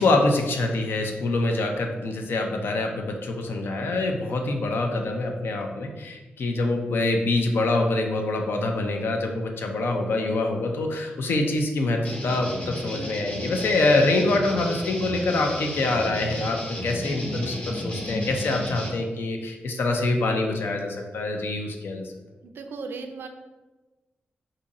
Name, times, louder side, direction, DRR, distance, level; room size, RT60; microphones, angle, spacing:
voice 1, 0.0-22.0, left 2 dB, 75° left, 3 dB, 0.5 m, -25 dB
sound 1, 12.0-18.9, left 1 dB, 35° left, 0.8 m, -33 dB
voice 2, 22.4-23.3, right 4 dB, 75° right, 5 dB, 0.4 m, -36 dB
2.6 x 2.6 x 4.0 m, 1.2 s
cardioid pair, 85°, 4 cm